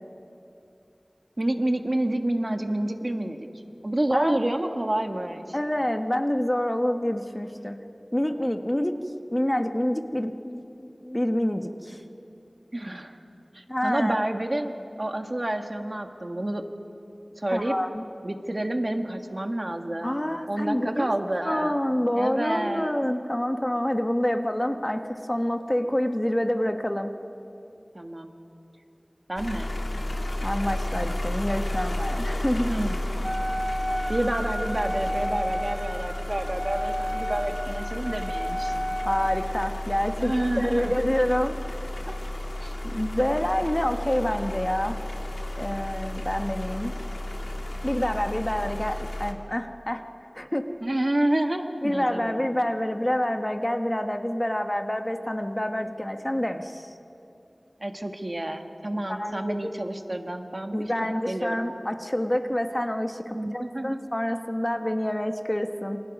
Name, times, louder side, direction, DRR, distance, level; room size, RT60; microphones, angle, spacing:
voice 1, 1.4-3.5 3.8-5.6 12.7-13.2 13.5-16.6 17.4-17.7 18.2-20.2 20.5-21.8 22.2-22.9 27.9-28.3 29.3-29.7 32.6-33.0 34.1-38.7 40.2-40.9 42.1-42.2 42.6-42.8 50.8-52.5 57.8-61.6 63.3-64.0, right 1 dB, 45° right, 5 dB, 1.6 m, -29 dB
voice 2, 5.5-7.8 8.1-8.9 9.3-12.0 13.7-14.1 17.5-18.0 20.0-21.1 21.4-27.1 30.4-32.7 39.0-41.8 42.8-45.0 45.6-46.9 47.8-50.0 50.3-50.7 51.8-56.9 59.1-59.7 60.7-66.0, left 1 dB, 20° left, 6 dB, 1.2 m, -27 dB
sound 1, 29.4-49.3, left 1 dB, 80° left, 2.0 m, -32 dB
Wind instrument woodwind instrument, 33.2-39.7, equal, ahead, 1.2 m, -32 dB
28.5 x 25.5 x 5.4 m, 2.8 s
wide cardioid pair, 50°, 0 cm